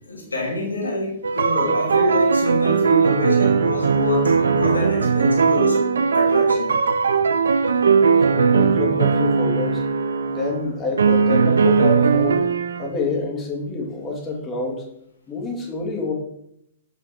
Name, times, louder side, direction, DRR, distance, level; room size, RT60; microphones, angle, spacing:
voice 1, 0.1-5.8 6.1-6.8, left 1 dB, 90° left, 1.6 m, -26 dB
sound 1, 1.2-10.6 11.0-12.9, right 5 dB, 75° right, 0.4 m, -18 dB
voice 2, 8.2-9.9 10.3-12.5 12.8-14.8 15.3-16.1, left 3 dB, 20° left, 1.8 m, -27 dB
6.3 x 5.2 x 3.5 m
figure-of-eight pair, 115°, 0 cm